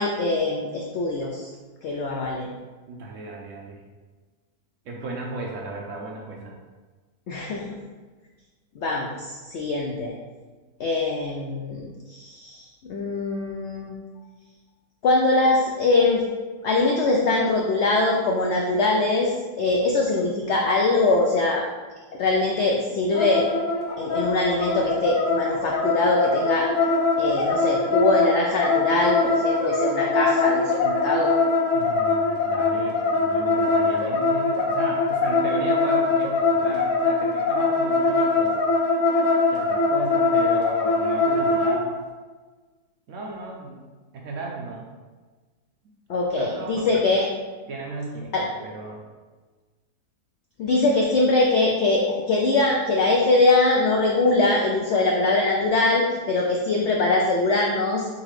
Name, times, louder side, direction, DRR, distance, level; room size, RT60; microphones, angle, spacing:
voice 1, 0.0-1.5 1.8-2.5 7.3-7.6 8.8-10.1 10.8-14.0 15.0-16.2 16.6-19.3 19.6-21.6 22.2-23.5 24.0-26.7 27.2-31.3 46.1-47.3 48.3-48.4 50.6-58.1, left 2 dB, 85° left, -1 dB, 0.6 m, -22 dB
voice 2, 2.9-3.8 4.8-6.6 31.7-38.6 39.5-42.0 43.1-43.8 44.1-44.9 46.4-47.0 47.7-49.1, right 3 dB, 70° right, -1 dB, 0.8 m, -35 dB
sound 1, 23.1-41.8, left 3 dB, 60° left, 0.9 m, -22 dB
4.0 x 3.8 x 3.1 m, 1.3 s
omnidirectional pair, 1.7 m